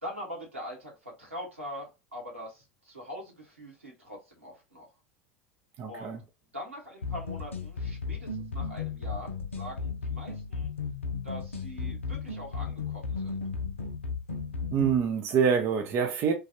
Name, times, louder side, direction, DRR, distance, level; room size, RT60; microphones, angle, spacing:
voice 1, 0.0-4.9 5.9-6.2 6.5-10.7 11.2-13.4, equal, 85° right, 1.2 m, -43 dB
voice 2, 5.8-6.2 14.7-16.3, right 7 dB, 40° right, 0.5 m, -26 dB
sound 1, 7.0-15.0, left 5 dB, 80° left, 0.5 m, -35 dB
3.2 x 2.3 x 2.8 m
figure-of-eight pair, 75°, 7 cm